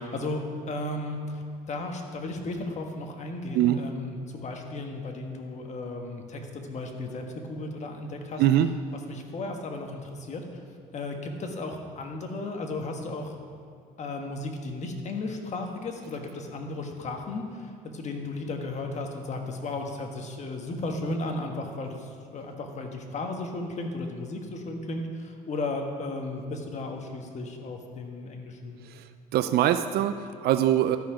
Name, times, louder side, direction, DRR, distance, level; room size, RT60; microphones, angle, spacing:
voice 1, 0.1-8.4 9.1-10.6 10.9-13.4 14.0-22.0 22.3-28.8, left 2 dB, 45° left, 3 dB, 1.3 m, -35 dB
voice 2, 8.4-8.7 29.3-31.0, right 12 dB, 70° right, 10 dB, 0.4 m, -22 dB
12.5 x 5.7 x 5.0 m, 2.4 s
cardioid pair, 110°, 17 cm